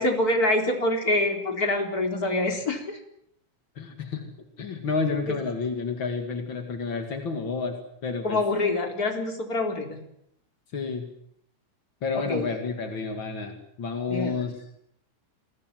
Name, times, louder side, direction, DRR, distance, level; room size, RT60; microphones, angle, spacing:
voice 1, 0.0-3.0 5.3-5.4 8.2-10.0 12.1-12.5 14.1-14.4, left 2 dB, 20° left, 3 dB, 3.7 m, -25 dB
voice 2, 3.7-4.2 4.6-7.8 8.0-8.4 10.7-11.1 12.0-14.5, left 4 dB, 55° left, 4 dB, 1.4 m, -30 dB
28.0 x 20.5 x 7.7 m, 0.73 s
omnidirectional pair, 5.9 m